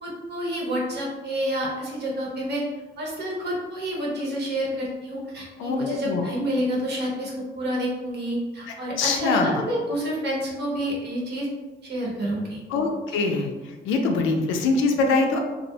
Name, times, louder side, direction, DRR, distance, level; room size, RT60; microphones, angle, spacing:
voice 1, 0.0-2.6 3.0-11.5 11.8-12.6 13.2-13.3, equal, 55° right, -3 dB, 0.9 m, -28 dB
voice 2, 5.6-6.2 9.0-9.5 12.7-13.5 13.8-15.4, left 3 dB, 90° left, 3 dB, 0.4 m, -23 dB
2.4 x 2.0 x 2.7 m, 1.2 s
cardioid pair, 90°, 20 cm